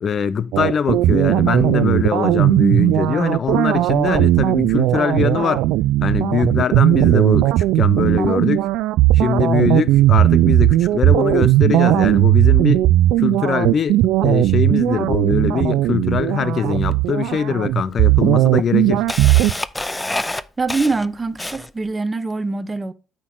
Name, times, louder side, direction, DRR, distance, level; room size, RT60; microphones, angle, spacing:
voice 1, 0.0-5.6 6.0-8.7 9.1-12.9 13.2-19.0, left 7 dB, 45° left, 0.7 m, -22 dB
sound 1, 0.5-19.5, right 15 dB, 70° right, 0.4 m, -16 dB
Camera, 16.9-17.0 17.9-18.0 18.4-21.9, left 1 dB, 10° left, 0.6 m, -27 dB
voice 2, 20.6-22.9, right 3 dB, 20° right, 0.9 m, -23 dB
8.8 x 6.0 x 4.7 m
hypercardioid pair, 70°, 0 cm